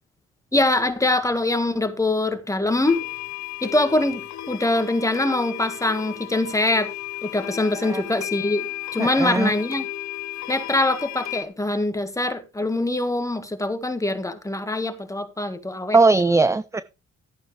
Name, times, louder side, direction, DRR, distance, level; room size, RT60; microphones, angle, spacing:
voice 1, 0.5-3.0 3.6-4.2 4.5-6.9 7.2-9.9 10.5-16.0 16.2-16.4, left 2 dB, 10° left, 1.7 m, -23 dB
sound 1, 2.9-11.4, left 14 dB, 65° left, 1.2 m, -34 dB
voice 2, 9.0-9.5 15.9-16.8, right 3 dB, 10° right, 0.4 m, -19 dB
14.0 x 9.0 x 3.3 m
cardioid pair, 90°, 30 cm